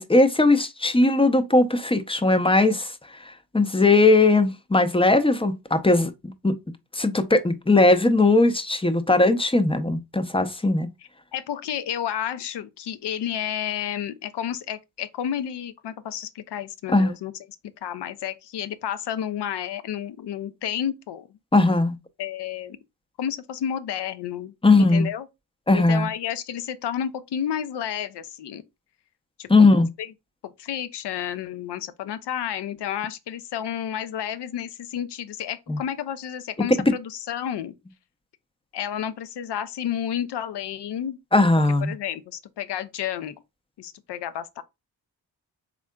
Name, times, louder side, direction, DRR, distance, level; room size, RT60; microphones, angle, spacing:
voice 1, 0.0-2.9 3.5-6.1 6.4-6.5 6.9-10.9 16.9-17.1 21.5-22.0 24.6-25.1 25.7-26.1 29.5-29.9 35.7-35.8 36.9-37.0 41.3-41.9, left 2 dB, 10° left, 0.6 m, -19 dB
voice 2, 11.3-17.3 17.8-21.4 22.2-22.8 23.2-25.3 25.7-28.6 29.4-29.7 30.0-30.1 30.4-37.7 38.7-41.2 41.8-43.4 43.8-44.6, left 9 dB, 65° left, 0.6 m, -31 dB
3.7 x 3.4 x 2.2 m
supercardioid pair, 40°, 45 cm